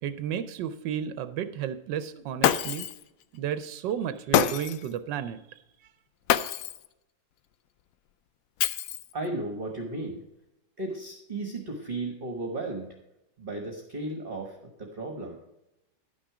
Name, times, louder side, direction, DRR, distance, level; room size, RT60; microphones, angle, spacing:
voice 1, 0.0-2.9 3.3-5.4, right 9 dB, 80° right, 11 dB, 1.3 m, -32 dB
Shatter, 2.4-3.0 4.3-4.9 6.3-6.9 8.6-9.3, left 11 dB, 75° left, 0.8 m, -26 dB
voice 2, 9.1-10.2 10.8-12.9 13.4-15.4, right 2 dB, 30° right, 2 dB, 1.3 m, -35 dB
11.5 x 6.3 x 4.8 m, 0.88 s
omnidirectional pair, 1.9 m